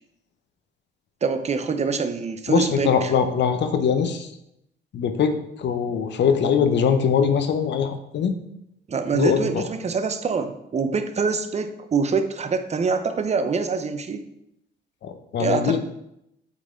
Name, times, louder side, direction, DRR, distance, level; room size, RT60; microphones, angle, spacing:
voice 1, 1.2-3.1 8.9-14.2 15.4-15.8, right 5 dB, 35° right, 8 dB, 0.7 m, -25 dB
voice 2, 2.5-4.3 4.9-8.4 9.1-9.6 15.0-15.8, left 7 dB, 65° left, 8 dB, 0.8 m, -22 dB
8.2 x 4.1 x 3.7 m, 0.80 s
cardioid pair, 90°, 20 cm